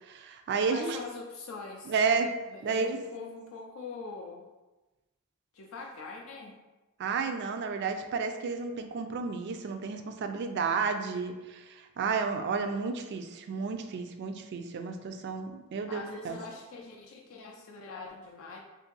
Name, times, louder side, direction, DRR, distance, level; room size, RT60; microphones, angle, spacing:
voice 1, 0.1-1.0 1.9-2.3 2.6-3.0 7.0-16.4, right 5 dB, 50° right, 6 dB, 0.3 m, -31 dB
voice 2, 0.7-1.9 2.5-4.5 5.5-6.6 15.9-18.6, left 3 dB, 65° left, 1 dB, 0.4 m, -43 dB
2.6 x 2.6 x 3.8 m, 1.1 s
head